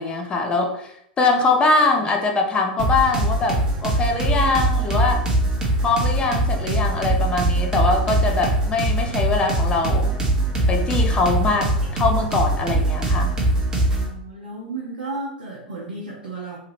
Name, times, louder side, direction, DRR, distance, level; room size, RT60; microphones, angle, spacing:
voice 1, 0.0-5.2 5.8-10.2 10.7-13.4, left 3 dB, 20° left, 2 dB, 0.5 m, -22 dB
sound 1, 2.8-14.1, right 1 dB, 15° right, 0.8 m, -22 dB
voice 2, 13.9-16.6, right 3 dB, 70° right, -4 dB, 0.7 m, -33 dB
2.7 x 2.3 x 3.3 m, 0.72 s
figure-of-eight pair, 90°, 5 cm